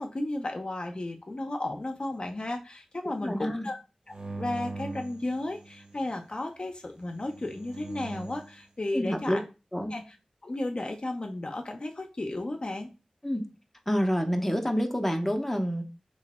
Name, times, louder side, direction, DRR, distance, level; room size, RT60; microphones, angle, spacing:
voice 1, 0.0-3.8 4.4-9.4 9.9-10.0 10.4-12.9, left 2 dB, 50° left, 3 dB, 0.6 m, -34 dB
voice 2, 3.1-3.7 8.9-9.4 9.7-9.9 13.2-13.5 13.9-15.8, equal, 10° left, 4 dB, 0.8 m, -28 dB
sound 1, 4.1-6.1 7.1-8.6, right 3 dB, 50° right, 0.6 m, -41 dB
3.1 x 3.0 x 4.2 m, 0.29 s
wide cardioid pair, 45°, 2 cm